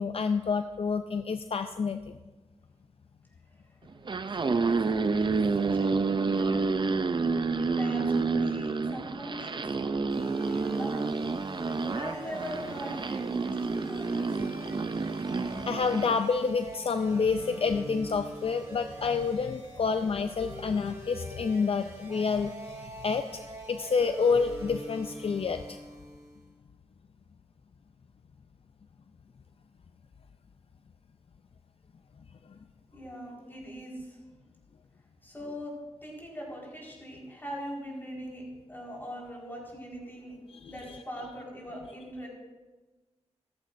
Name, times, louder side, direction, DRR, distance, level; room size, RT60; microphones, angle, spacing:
voice 1, 0.0-2.2 15.4-23.4 23.7-25.8 32.5-32.6 40.5-40.7, left 5 dB, 55° left, 9 dB, 0.4 m, -29 dB
voice 2, 3.5-4.0 4.3-6.7 7.5-11.0 11.9-14.6 32.9-34.2 35.2-38.4 38.7-40.4 40.7-42.3, equal, 20° left, -3 dB, 4.5 m, -42 dB
sound 1, 3.9-16.2, right 4 dB, 40° right, 0.5 m, -29 dB
sound 2, 10.1-26.5, right 2 dB, 25° right, 3.7 m, -43 dB
14.5 x 14.0 x 2.6 m, 1.2 s
wide cardioid pair, 80°, 12 cm